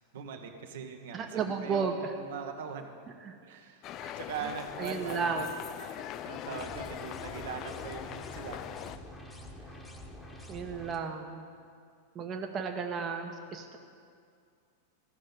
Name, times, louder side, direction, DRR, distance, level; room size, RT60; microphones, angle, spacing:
voice 1, 0.1-2.9 3.4-3.8 4.2-5.5 5.9-8.8 9.6-9.8, right 6 dB, 55° right, 4 dB, 1.0 m, -42 dB
voice 2, 1.1-2.1 3.3-3.4 4.0-4.1 4.8-5.5 10.5-11.4 12.1-13.8, right 5 dB, 25° right, 4 dB, 0.9 m, -33 dB
sound 1, 3.8-9.0, left 11 dB, 35° left, 0.4 m, -41 dB
sound 2, 6.6-11.0, equal, 10° left, 1.3 m, -47 dB
14.5 x 6.4 x 8.2 m, 2.3 s
figure-of-eight pair, 90°, 0 cm